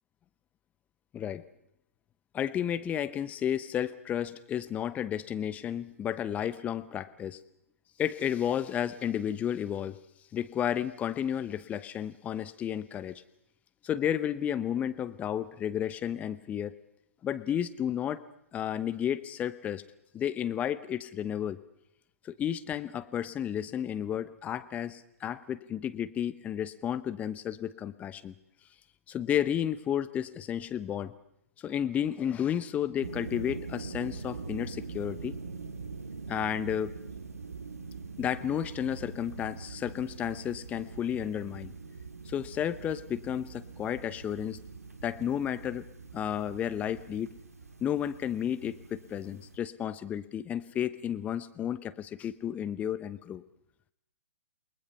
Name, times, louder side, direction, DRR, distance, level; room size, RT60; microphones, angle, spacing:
voice 1, 2.3-7.4 8.0-10.0 10.3-13.2 13.8-16.7 17.2-18.2 18.5-19.8 20.1-21.6 22.2-28.3 29.1-31.1 31.6-35.3 36.3-36.9 38.2-41.7 42.3-44.6 45.0-45.8 46.1-47.3 47.8-53.4, left 9 dB, 15° left, 13 dB, 1.0 m, -32 dB
sound 1, 33.0-49.6, right 4 dB, 85° right, 2.0 m, -43 dB
28.5 x 20.5 x 5.6 m, 0.79 s
figure-of-eight pair, 125°, 8 cm